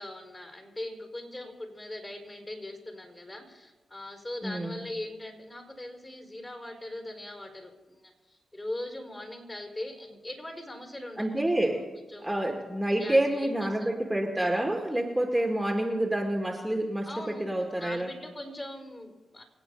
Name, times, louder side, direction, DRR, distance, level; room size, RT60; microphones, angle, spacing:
voice 1, 0.0-11.3 12.1-12.3 13.0-13.9 17.0-17.5 17.8-19.4, left 1 dB, 25° left, 3 dB, 5.0 m, -40 dB
voice 2, 4.4-4.8 11.2-11.8 12.2-18.1, right 1 dB, 10° right, 1 dB, 2.1 m, -28 dB
26.0 x 8.8 x 5.5 m, 1.2 s
supercardioid pair, 50°, 0 cm